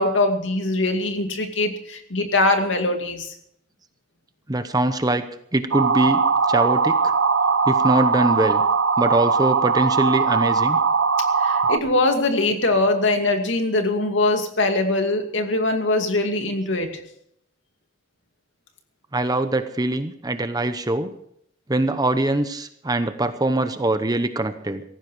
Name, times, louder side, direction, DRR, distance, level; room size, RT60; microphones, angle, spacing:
voice 1, 0.0-3.3 11.4-16.9, left 2 dB, 85° left, 5 dB, 2.4 m, -22 dB
voice 2, 4.5-5.2 5.5-7.1 7.7-8.6 9.0-10.8 19.1-21.1 21.7-24.8, right 2 dB, 20° right, 9 dB, 0.9 m, -23 dB
sound 1, 5.7-11.8, right 5 dB, 90° right, 1.0 m, -20 dB
17.5 x 15.0 x 4.7 m, 0.70 s
head